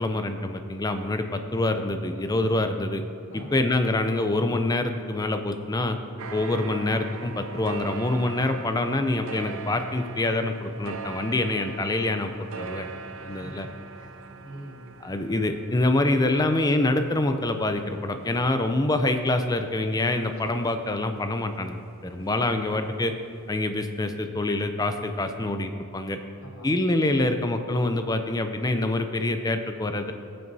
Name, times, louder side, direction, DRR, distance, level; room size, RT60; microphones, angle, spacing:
voice 1, 0.0-3.0 3.3-6.0 6.3-12.3 12.6-12.9 13.2-13.7 15.0-23.1 23.5-26.2 26.6-30.1, left 2 dB, 15° left, 7 dB, 0.4 m, -26 dB
voice 2, 3.3-3.6 13.2-14.9 26.4-26.9, right 1 dB, 75° left, -4 dB, 2.2 m, -44 dB
sound 1, 6.2-21.3 21.7-23.1 23.3-23.4, right 4 dB, 70° right, 0.5 m, -41 dB
15.0 x 7.7 x 2.7 m, 2.6 s
head